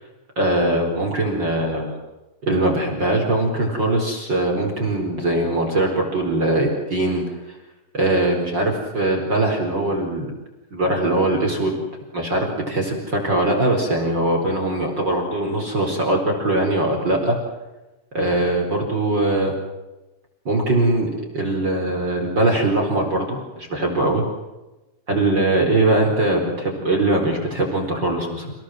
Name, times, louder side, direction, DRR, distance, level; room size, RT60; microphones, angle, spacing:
voice 1, 0.4-1.9 2.4-7.6 7.9-10.3 10.7-11.8 12.1-17.4 18.1-19.5 20.4-21.1 21.3-24.2 25.1-28.5, right 2 dB, 30° right, 1 dB, 4.8 m, -21 dB
29.5 x 18.0 x 7.8 m, 1.1 s
omnidirectional pair, 4.0 m